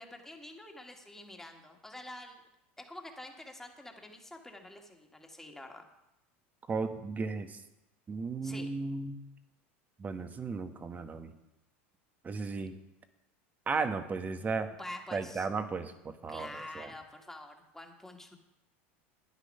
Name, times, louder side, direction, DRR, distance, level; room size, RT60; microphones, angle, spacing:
voice 1, 0.0-2.4 2.8-5.9 8.4-8.7 14.8-15.5 16.3-18.4, left 1 dB, 5° left, 3 dB, 2.0 m, -47 dB
voice 2, 6.7-7.6 8.1-9.2 10.0-11.3 12.2-12.7 13.7-14.7 15.1-16.9, right 4 dB, 25° right, 9 dB, 1.2 m, -35 dB
12.5 x 9.8 x 5.5 m, 0.92 s
supercardioid pair, 105°, 7 cm